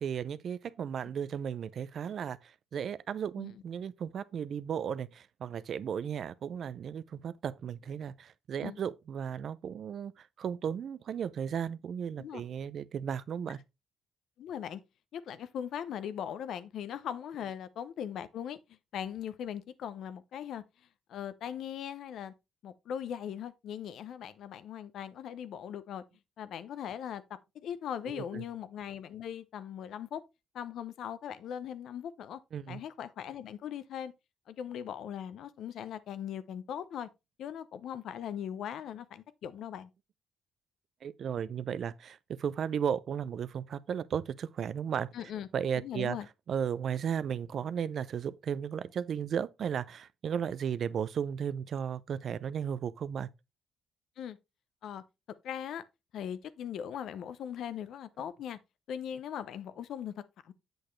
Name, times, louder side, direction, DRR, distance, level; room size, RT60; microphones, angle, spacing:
voice 1, 0.0-13.6 28.1-28.4 32.5-32.8 41.0-45.1 45.5-46.2 46.5-53.3, right 8 dB, 60° right, 0.5 m, -35 dB
voice 2, 14.4-14.8 15.1-20.6 21.1-22.3 22.6-26.0 26.4-27.2 27.5-30.2 30.5-32.4 32.7-34.1 34.5-37.1 37.4-39.9 45.1-45.5 45.8-46.3 54.2-54.4 54.8-55.0 55.4-55.8 56.1-58.6 58.9-60.1 60.4-60.5, left 9 dB, 75° left, 0.7 m, -39 dB
7.9 x 6.6 x 3.2 m
cardioid pair, 90°, 0 cm